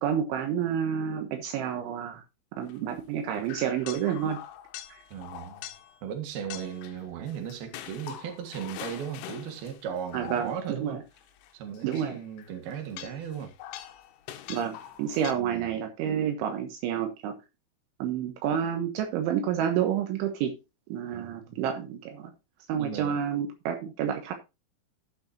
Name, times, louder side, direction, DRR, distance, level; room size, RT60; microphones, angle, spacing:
voice 1, 0.0-2.2 2.6-4.4 4.9-5.0 10.1-11.0 11.8-12.2 14.5-17.3 18.0-20.5 20.9-22.3 22.7-24.3, right 9 dB, 80° right, 3.5 m, -29 dB
sound 1, 2.6-2.9 3.4-6.0 6.5-10.9 11.2-15.3, left 11 dB, 85° left, 3.4 m, -44 dB
voice 2, 5.1-5.6 6.0-11.0 11.5-13.5 15.3-15.8 21.1-21.6 22.8-23.2, right 8 dB, 60° right, 3.3 m, -37 dB
15.0 x 6.2 x 2.8 m
omnidirectional pair, 5.6 m